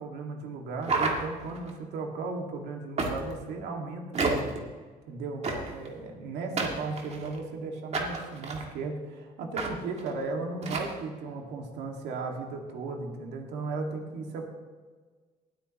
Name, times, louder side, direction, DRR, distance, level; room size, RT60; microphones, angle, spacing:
voice 1, 0.0-4.5 5.1-14.5, right 3 dB, 80° right, 2 dB, 2.2 m, -36 dB
sound 1, 0.8-1.7 3.0-3.5 4.1-4.6 5.4-5.9 6.6-7.4 7.9-8.7 9.6-9.7 10.0-10.1 10.6-10.9, right 3 dB, 40° right, 2.1 m, -30 dB
19.5 x 8.8 x 3.1 m, 1.4 s
cardioid pair, 110°, 17 cm